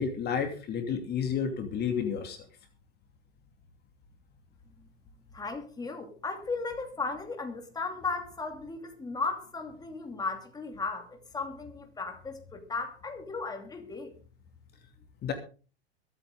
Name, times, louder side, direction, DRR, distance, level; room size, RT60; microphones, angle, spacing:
voice 1, 0.0-2.4 15.2-15.3, left 7 dB, 30° left, 6 dB, 2.8 m, -31 dB
voice 2, 5.3-14.1, left 3 dB, 10° left, 4 dB, 2.8 m, -36 dB
22.5 x 9.0 x 3.8 m, 0.36 s
hypercardioid pair, 105°, 33 cm